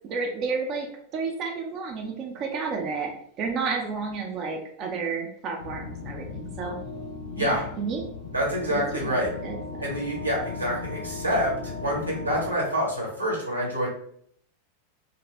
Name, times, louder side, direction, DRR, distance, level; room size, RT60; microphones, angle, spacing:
voice 1, 0.0-0.9 1.1-3.1 3.4-6.7 7.4-8.0 8.7-8.8 9.1-9.9, right 4 dB, 35° right, 1 dB, 0.4 m, -31 dB
sound 1, 5.6-12.5, left 4 dB, 65° left, 0.5 m, -37 dB
voice 2, 7.3-7.7 8.3-9.3 9.8-13.9, equal, 85° right, -3 dB, 0.9 m, -27 dB
2.6 x 2.0 x 3.2 m, 0.66 s
figure-of-eight pair, 90°, 0 cm